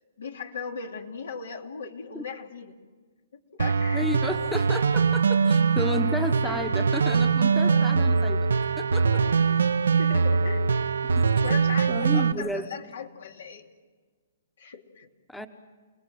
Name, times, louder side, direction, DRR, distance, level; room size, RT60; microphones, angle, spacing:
voice 1, 0.2-2.8 3.3-4.2 7.7-7.8 10.0-10.8 11.4-13.7 14.6-15.1, left 6 dB, 75° left, 4 dB, 2.6 m, -38 dB
sound 1, 3.6-12.3, right 5 dB, 90° right, 0.8 m, -22 dB
voice 2, 3.9-8.5 8.8-9.3 11.1-11.6 11.9-12.7 15.3-15.5, left 1 dB, 5° left, 8 dB, 1.1 m, -33 dB
29.5 x 18.5 x 7.7 m, 1.5 s
hypercardioid pair, 145°, 0 cm